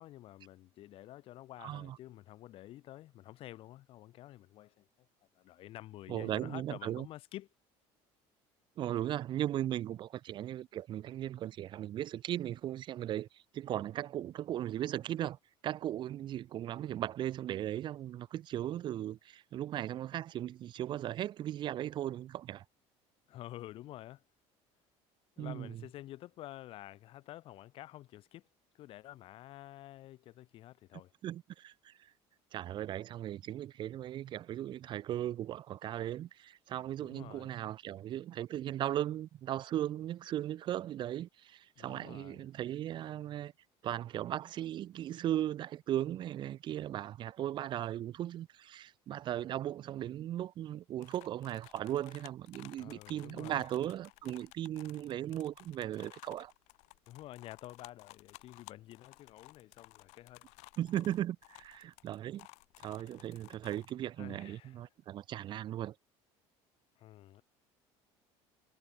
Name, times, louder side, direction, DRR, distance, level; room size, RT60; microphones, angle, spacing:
voice 1, 0.0-4.9 5.3-7.5 23.3-24.2 25.4-28.4 28.7-31.1 37.0-37.6 41.8-42.4 52.7-53.7 57.1-60.5 64.2-64.8 67.0-67.4, left 15 dB, 50° left, 6.8 m, -50 dB
voice 2, 1.6-2.0 6.1-7.1 8.8-15.4 15.6-22.6 25.4-25.8 31.2-31.9 32.5-43.5 43.8-56.5 60.8-62.5 62.8-66.0, right 12 dB, 40° right, 2.1 m, -37 dB
sound 1, 51.0-63.9, left 26 dB, 75° left, 5.0 m, -56 dB
cardioid pair, 160°, 12 cm